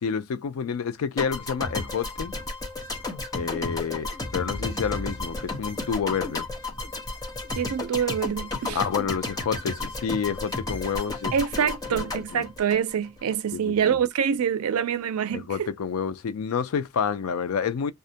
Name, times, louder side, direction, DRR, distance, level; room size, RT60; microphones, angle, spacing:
voice 1, 0.0-2.3 3.3-6.5 8.7-11.3 11.6-12.4 13.5-14.0 15.3-17.9, left 6 dB, 80° left, 0.4 m, -29 dB
sound 1, 1.2-13.4, left 2 dB, 15° left, 0.7 m, -33 dB
voice 2, 7.5-8.8 11.3-15.7, right 7 dB, 90° right, 0.4 m, -26 dB
2.3 x 2.1 x 2.7 m
head